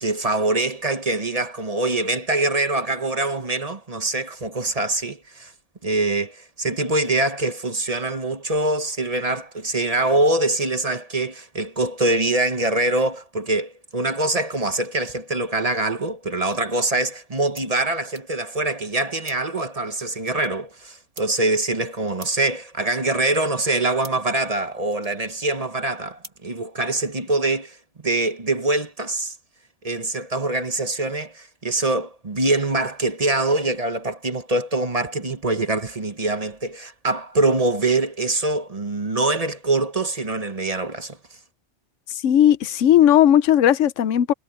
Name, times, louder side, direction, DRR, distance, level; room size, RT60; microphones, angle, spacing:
voice 1, 0.0-5.5 5.8-27.8 28.0-29.4 29.8-41.2, right 2 dB, 30° right, 1.2 m, -24 dB
sound 1, 15.7-27.2, right 2 dB, 85° right, 4.4 m, -51 dB
voice 2, 42.1-44.3, left 11 dB, 90° left, 1.0 m, -16 dB
omnidirectional pair, 1.2 m